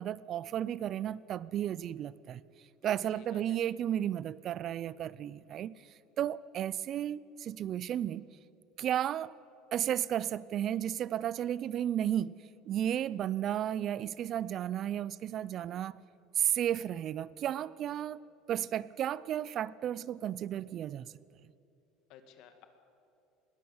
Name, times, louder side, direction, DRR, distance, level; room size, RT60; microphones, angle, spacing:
voice 1, 0.0-2.4 2.8-5.7 6.2-8.3 8.8-9.3 9.7-12.4 12.7-16.0 16.4-21.1, right 11 dB, 40° right, 0.4 m, -33 dB
voice 2, 2.8-3.6 22.1-22.6, left 9 dB, 55° left, 2.0 m, -55 dB
20.5 x 17.5 x 7.2 m
cardioid pair, 155°, 0 cm